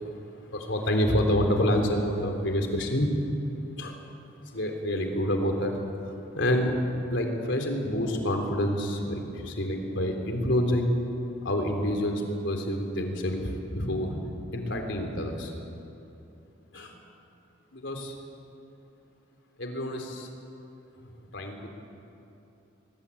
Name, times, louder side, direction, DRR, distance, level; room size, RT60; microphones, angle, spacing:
voice 1, 0.0-3.1 3.8-4.0 4.5-5.8 6.3-6.7 7.1-10.9 11.4-14.2 14.5-15.5 16.7-16.9 17.7-18.2 19.6-20.3 21.0-21.7, equal, 70° left, 4 dB, 3.5 m, -28 dB
23.0 x 22.0 x 8.6 m, 2.9 s
head